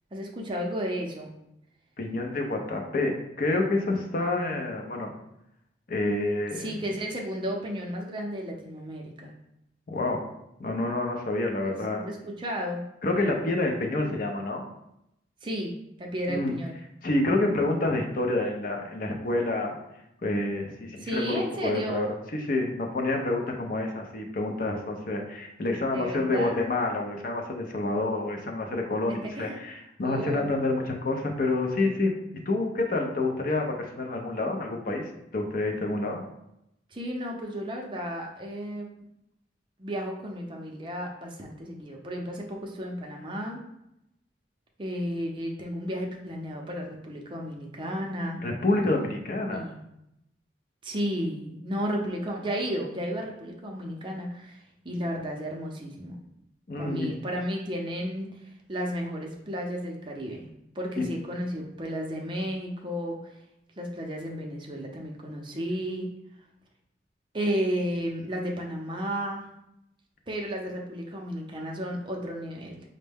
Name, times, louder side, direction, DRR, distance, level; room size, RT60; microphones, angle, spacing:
voice 1, 0.1-1.3 6.6-9.3 11.6-12.8 15.4-15.7 16.0-16.8 21.0-22.1 25.9-26.6 29.0-29.6 30.0-30.5 36.9-39.1 39.8-43.6 44.8-48.4 49.5-49.9 50.8-54.6 54.8-56.2 56.8-58.3 58.7-60.5 60.7-63.2 63.8-66.1 67.3-69.4 70.3-72.8, equal, 25° right, 0 dB, 0.5 m, -33 dB
voice 2, 2.0-5.1 5.9-6.7 9.9-10.2 10.6-12.1 13.0-14.6 16.3-16.5 17.0-19.8 20.2-21.3 21.6-32.1 32.5-36.2 48.4-49.7 56.7-57.1 61.0-61.1, left 2 dB, 50° left, 2 dB, 0.5 m, -28 dB
5.2 x 2.1 x 3.4 m, 0.82 s
head